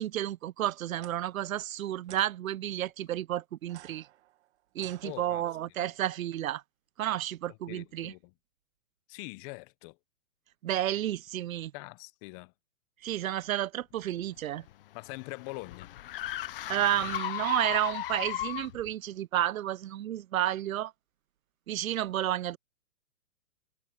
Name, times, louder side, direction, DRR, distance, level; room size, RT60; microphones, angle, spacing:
voice 1, 0.0-4.1 4.7-6.6 7.0-8.1 10.6-11.7 13.0-14.7 16.7-20.9 21.7-22.6, right 12 dB, 75° right, 0.7 m, -31 dB
sound 1, 0.9-1.1 2.0-2.3 3.6-5.7, right 13 dB, 55° right, 1.7 m, -53 dB
voice 2, 5.0-5.4 5.8-5.9 7.5-8.3 9.1-10.0 11.7-12.5 14.9-15.9, left 26 dB, 25° left, 0.9 m, -43 dB
sound 2, 14.4-18.9, left 14 dB, 40° left, 0.5 m, -36 dB
hypercardioid pair, 140°, 42 cm